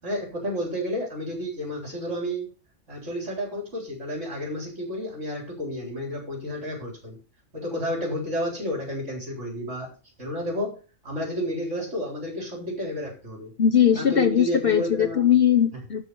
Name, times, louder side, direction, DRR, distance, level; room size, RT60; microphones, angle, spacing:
voice 1, 0.0-2.5 2.9-7.2 7.5-9.9 10.2-10.8 11.0-13.5 13.9-15.2 15.7-15.8, equal, 65° right, 0 dB, 4.4 m, -31 dB
voice 2, 13.6-16.1, left 9 dB, 50° left, 8 dB, 1.0 m, -20 dB
12.5 x 4.7 x 6.9 m, 0.35 s
omnidirectional pair, 1.3 m